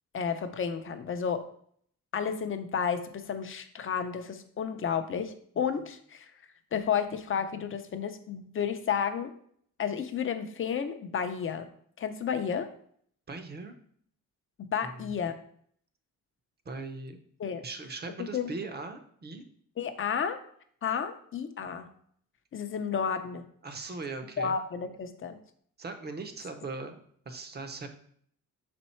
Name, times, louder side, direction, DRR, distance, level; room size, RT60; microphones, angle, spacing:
voice 1, 0.1-1.4 2.1-6.3 6.7-9.3 9.8-11.7 12.0-12.7 14.6-15.4 17.4-17.6 18.3-18.5 19.8-20.4 20.8-21.9 22.5-23.4 24.4-25.4, left 7 dB, 35° left, 8 dB, 0.5 m, -31 dB
voice 2, 13.3-13.7 14.8-15.1 16.7-17.2 17.6-19.4 23.6-24.6 25.8-27.0 27.3-27.9, right 3 dB, 30° right, 7 dB, 0.6 m, -39 dB
6.2 x 4.3 x 4.3 m, 0.62 s
wide cardioid pair, 170°, 35 cm